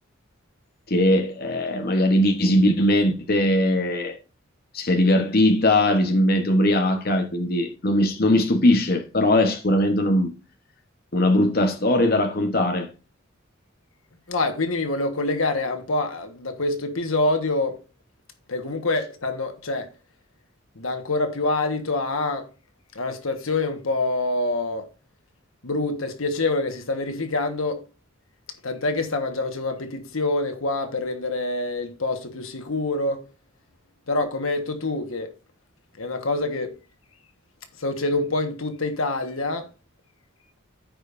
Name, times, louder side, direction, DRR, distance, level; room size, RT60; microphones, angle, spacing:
voice 1, 0.9-4.2 4.7-10.3 11.1-12.9, left 1 dB, 50° left, 1.0 m, -20 dB
voice 2, 14.3-17.8 18.5-19.9 20.7-22.5 22.9-24.9 25.6-27.8 28.6-33.2 34.1-35.3 36.0-36.7 37.8-39.7, left 2 dB, 85° left, 1.4 m, -26 dB
14.0 x 5.2 x 2.6 m
head